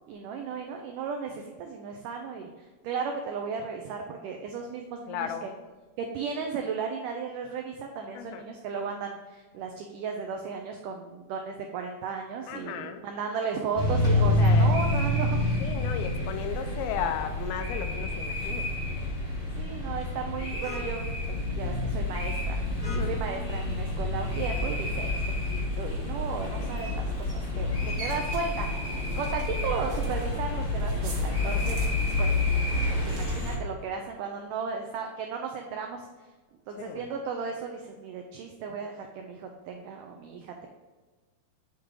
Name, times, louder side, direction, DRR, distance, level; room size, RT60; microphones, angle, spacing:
voice 1, 0.1-5.5 6.0-15.6 19.6-22.6 22.9-25.1 25.5-31.8 32.2-32.3 33.0-36.1 36.7-40.7, right 5 dB, 85° right, 3 dB, 1.8 m, -35 dB
voice 2, 5.1-5.5 8.1-8.5 12.5-13.0 14.3-14.8 15.6-18.7 22.9-23.2 36.8-37.1, left 8 dB, 85° left, 7 dB, 2.5 m, -35 dB
sound 1, 13.7-33.6, left 2 dB, 55° left, 0.5 m, -28 dB
sound 2, 21.1-33.2, left 3 dB, 50° right, 1.8 m, -39 dB
8.6 x 3.7 x 4.6 m, 1.3 s
omnidirectional pair, 4.4 m